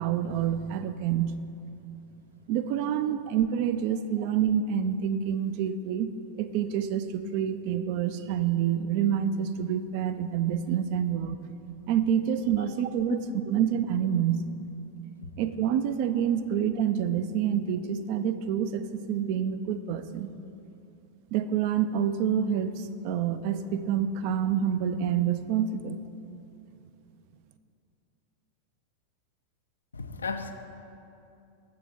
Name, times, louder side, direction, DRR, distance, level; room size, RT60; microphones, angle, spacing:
voice 1, 0.0-1.3 2.5-6.1 6.4-11.4 11.9-13.2 13.5-14.4 15.4-20.3 21.3-26.0, right 9 dB, 45° right, 11 dB, 0.3 m, -27 dB
voice 2, 29.9-30.5, left 5 dB, 75° left, 7 dB, 0.4 m, -34 dB
7.5 x 5.6 x 4.1 m, 2.7 s
figure-of-eight pair, 90°, 0 cm